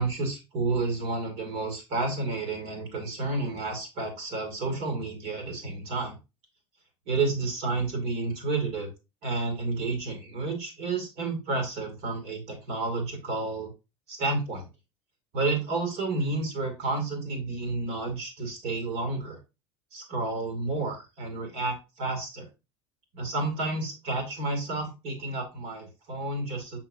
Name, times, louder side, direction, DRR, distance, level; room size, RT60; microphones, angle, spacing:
voice 1, 0.0-6.2 7.1-8.9 9.2-13.7 14.1-14.7 15.3-19.4 19.9-22.5 23.1-26.8, right 3 dB, 50° right, 3 dB, 2.6 m, -30 dB
6.4 x 5.8 x 2.7 m, 0.27 s
cardioid pair, 160°, 13 cm